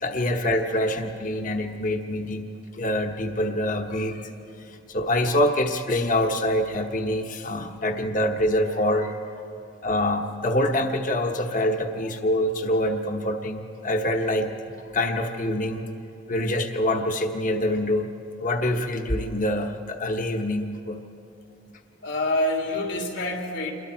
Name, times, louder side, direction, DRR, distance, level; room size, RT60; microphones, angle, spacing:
voice 1, 0.0-2.5 2.7-4.3 4.6-9.5 9.8-15.9 16.3-18.1 18.4-21.0, left 1 dB, 45° left, 4 dB, 1.2 m, -25 dB
voice 2, 22.0-23.7, left 1 dB, 80° left, 1 dB, 2.9 m, -26 dB
28.0 x 22.0 x 4.5 m, 2.8 s
head